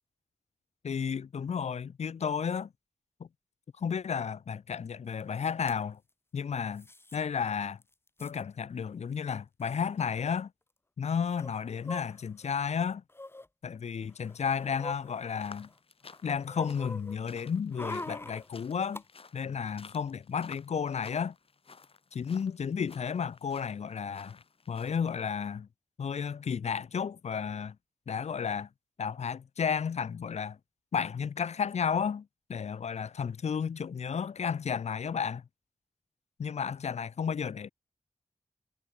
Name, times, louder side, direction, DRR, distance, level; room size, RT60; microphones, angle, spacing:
voice 1, 0.8-2.7 3.2-3.3 3.8-6.0 6.3-6.9 7.1-7.8 8.2-10.5 11.0-13.0 13.6-15.7 16.2-19.0 19.3-21.3 22.1-24.4 24.7-25.7 26.0-27.8 28.1-28.7 29.0-30.6 30.9-35.4 36.4-37.7, left 6 dB, 80° left, 1.3 m, -32 dB
sound 1, 5.2-5.3 5.5-5.8 6.8-7.2 7.5-7.6 7.8-8.4 9.3-9.4 9.6-9.8 11.4-12.5 13.1-13.5 14.1-15.7 16.1-19.0 19.4-19.5, left 2 dB, 20° left, 1.7 m, -44 dB
sound 2, 15.3-25.3, left 4 dB, 60° left, 4.6 m, -54 dB
wide cardioid pair, 75°, 11 cm